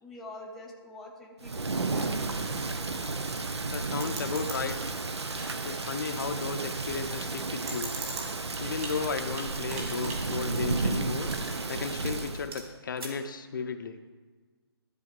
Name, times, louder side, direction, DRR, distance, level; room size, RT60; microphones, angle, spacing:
voice 1, 0.0-2.2, left 2 dB, ahead, -3 dB, 0.6 m, -45 dB
Thunder / Rain, 1.4-12.5, right 3 dB, 85° right, 0.9 m, -33 dB
sound 1, 2.1-11.7, right 3 dB, 35° right, 2.4 m, -44 dB
voice 2, 3.7-4.9 5.6-7.9 8.6-11.3 11.7-14.0, left 5 dB, 50° left, 8 dB, 0.6 m, -34 dB
sound 2, 10.7-10.8 11.3-11.5 11.8-11.9 12.2-13.3, right 3 dB, 65° right, 1.9 m, -47 dB
12.5 x 4.2 x 6.7 m, 1.4 s
hypercardioid pair, 155°, 14 cm